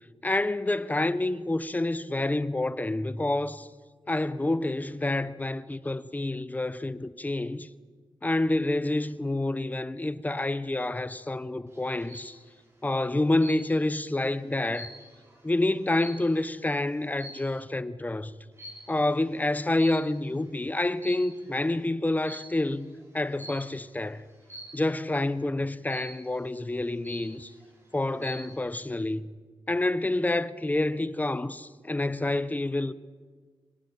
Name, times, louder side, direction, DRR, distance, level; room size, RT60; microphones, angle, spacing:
voice 1, 0.2-3.7 4.1-7.7 8.2-12.4 12.8-14.9 15.4-18.3 18.9-24.3 24.7-27.5 27.9-29.3 29.7-32.9, left 2 dB, 20° left, 0.9 m, -28 dB
sound 1, 11.7-12.3 13.4-13.9 14.3-16.6 17.1-17.6 18.6-19.0 19.8-20.4 20.9-21.5 22.2-22.6 23.4-23.8 24.5-24.9 25.9-26.4 26.8-26.9 27.0-27.6 28.0-28.5, equal, 30° right, 6.8 m, -44 dB
25.0 x 17.5 x 8.8 m
wide cardioid pair, 100°, 9 cm